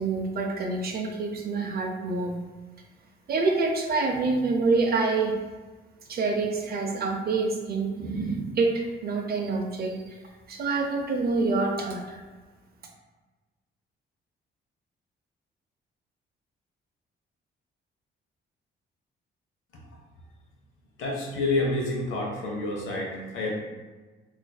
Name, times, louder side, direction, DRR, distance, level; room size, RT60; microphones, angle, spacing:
voice 1, 0.0-2.4 3.3-5.3 6.1-10.2 10.5-12.2, right 3 dB, 50° right, 2 dB, 0.5 m, -27 dB
voice 2, 21.0-23.6, left 2 dB, 85° left, -1 dB, 0.7 m, -28 dB
4.2 x 2.5 x 2.2 m, 1.3 s
cardioid pair, 90°, 20 cm